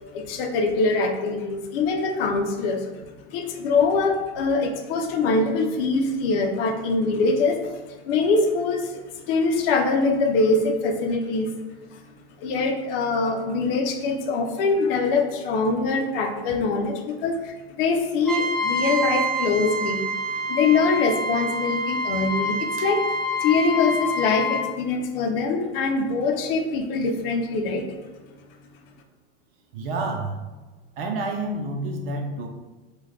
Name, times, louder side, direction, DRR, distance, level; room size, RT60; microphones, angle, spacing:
voice 1, 0.1-2.9 3.3-7.6 7.9-9.0 9.3-11.5 11.9-12.0 12.4-20.0 20.5-27.8, left 3 dB, 60° left, 4 dB, 0.6 m, -23 dB
Trumpet, 18.3-24.7, equal, ahead, 0.3 m, -27 dB
voice 2, 29.7-30.4 31.0-32.5, right 2 dB, 60° right, 3 dB, 0.7 m, -29 dB
3.8 x 2.4 x 3.2 m, 1.2 s
hypercardioid pair, 105°, 32 cm